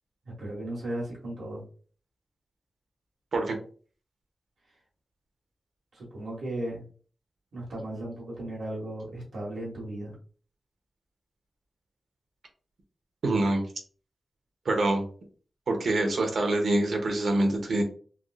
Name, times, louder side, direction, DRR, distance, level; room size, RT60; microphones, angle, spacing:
voice 1, 0.2-1.6 5.9-6.8 7.5-10.1, right 1 dB, 85° right, -4 dB, 1.4 m, -36 dB
voice 2, 13.2-13.6 14.6-15.1 15.7-17.8, right 2 dB, 65° right, 3 dB, 0.8 m, -25 dB
3.4 x 2.5 x 2.4 m, 0.41 s
wide cardioid pair, 175°, 0 cm